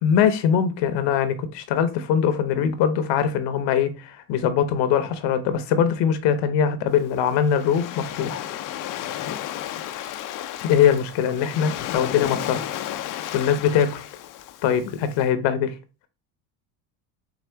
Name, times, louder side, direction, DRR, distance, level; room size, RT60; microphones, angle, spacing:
voice 1, 0.0-8.4 10.6-12.6 13.3-14.1 14.6-15.7, left 8 dB, 60° left, 0.8 m, -22 dB
Waves surf, 6.9-15.2, left 12 dB, 45° left, 0.5 m, -33 dB
4.7 x 2.4 x 3.3 m
supercardioid pair, 90°, 47 cm